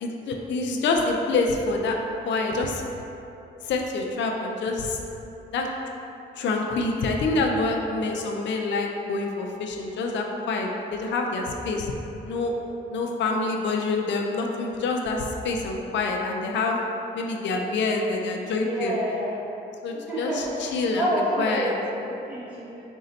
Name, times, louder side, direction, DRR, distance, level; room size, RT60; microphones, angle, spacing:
voice 1, 0.0-2.0 2.2-2.9 3.6-5.0 5.5-5.7 6.4-12.0 12.2-12.5 12.9-16.8 17.1-19.0 19.8-21.1 21.4-21.7, left 3 dB, 70° left, 1 dB, 0.4 m, -26 dB
voice 2, 18.6-19.3 20.1-22.9, equal, 5° right, -10 dB, 1.0 m, -29 dB
4.1 x 2.7 x 3.9 m, 2.9 s
cardioid pair, 85°, 20 cm